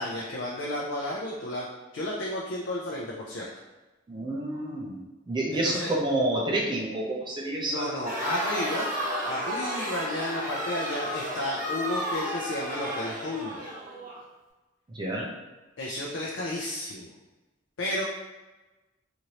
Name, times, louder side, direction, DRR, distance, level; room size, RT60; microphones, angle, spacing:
voice 1, 0.0-1.7 1.9-3.5 5.5-5.9 7.7-8.9 9.2-13.7 15.8-17.1 17.8-18.0, left 1 dB, 70° left, -3 dB, 0.4 m, -32 dB
voice 2, 4.1-5.0 5.3-8.0 14.9-15.3, right 1 dB, 25° right, -2 dB, 0.4 m, -29 dB
Crowd, 8.0-14.2, equal, 45° right, 0.9 m, -32 dB
3.0 x 2.6 x 2.8 m, 1.1 s
head